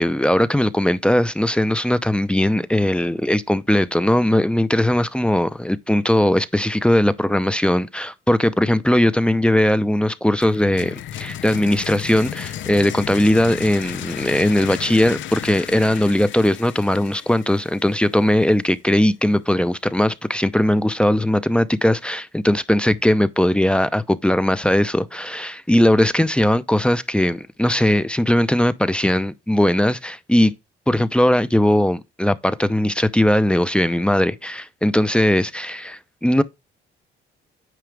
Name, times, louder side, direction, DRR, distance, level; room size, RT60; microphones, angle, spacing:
voice 1, 0.0-30.5 30.9-36.4, left 1 dB, 5° left, 0.6 m, -19 dB
sound 1, 10.4-18.2, left 11 dB, 70° left, 0.7 m, -34 dB
9.4 x 4.9 x 3.4 m
cardioid pair, 90°, 20 cm